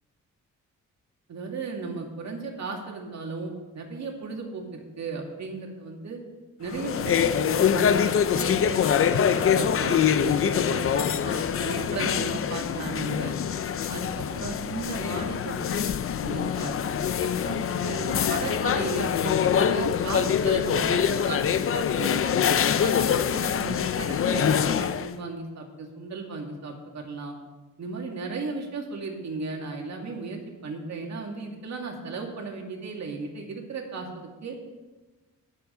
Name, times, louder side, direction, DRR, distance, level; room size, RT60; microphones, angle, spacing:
voice 1, 1.3-6.2 6.6-13.3 13.9-15.6 15.8-16.8 17.2-22.2 22.8-27.4 27.8-34.7, right 4 dB, 60° right, 1 dB, 2.3 m, -35 dB
sound 1, 6.7-25.1, left 8 dB, 45° left, 0.5 m, -24 dB
19.5 x 7.4 x 3.9 m, 1.2 s
cardioid pair, 110°, 31 cm